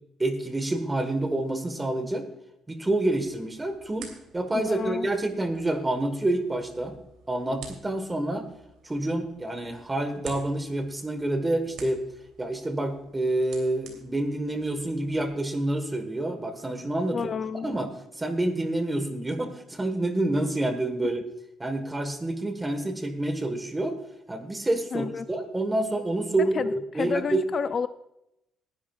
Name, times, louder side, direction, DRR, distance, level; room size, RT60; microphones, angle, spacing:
voice 1, 0.2-2.2 2.7-4.1 4.3-6.9 7.3-8.4 8.8-12.0 12.4-17.2 17.6-17.9 18.1-21.2 21.6-23.9 24.3-27.4, right 1 dB, 15° right, 8 dB, 1.3 m, -28 dB
sound 1, 3.1-15.3, right 5 dB, 80° right, 2.9 m, -50 dB
voice 2, 4.5-5.1 17.1-17.7 24.9-25.3 26.4-27.9, left 6 dB, 40° left, 12 dB, 0.4 m, -30 dB
19.5 x 11.0 x 2.4 m, 0.84 s
cardioid pair, 125°, 0 cm